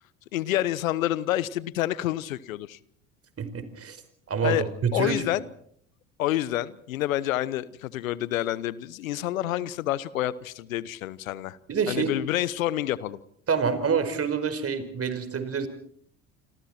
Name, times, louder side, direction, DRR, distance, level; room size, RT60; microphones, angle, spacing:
voice 1, 0.3-2.8 4.4-4.6 4.9-5.4 6.2-11.6 11.9-13.2, left 14 dB, 80° left, 19 dB, 1.1 m, -28 dB
voice 2, 3.4-4.0 4.3-5.2 11.7-12.1 13.5-15.7, right 6 dB, 35° right, 10 dB, 5.0 m, -27 dB
29.0 x 26.0 x 4.4 m, 0.64 s
hypercardioid pair, 65°, 40 cm